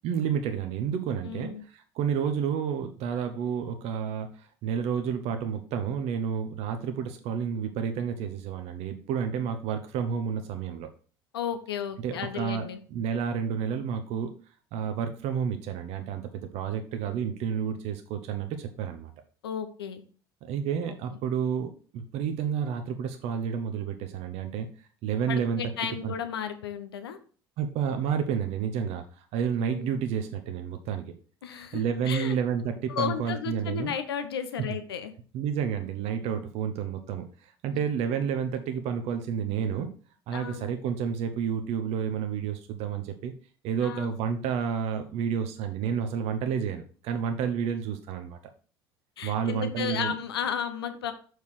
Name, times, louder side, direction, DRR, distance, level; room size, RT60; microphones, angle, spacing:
voice 1, 0.0-10.9 12.0-14.3 14.7-19.1 20.4-25.6 26.0-26.1 27.6-31.1 31.5-33.9 35.3-39.9 40.3-43.3 43.6-48.4 49.2-50.1, right 7 dB, 55° right, 7 dB, 0.8 m, -30 dB
voice 2, 1.2-1.6 11.3-12.8 19.4-20.0 25.3-27.2 29.6-30.0 31.4-32.3 32.9-35.1 40.3-40.7 43.8-44.1 49.2-51.1, left 8 dB, 80° left, 10 dB, 0.8 m, -33 dB
6.7 x 4.7 x 4.7 m, 0.40 s
figure-of-eight pair, 60°, 13 cm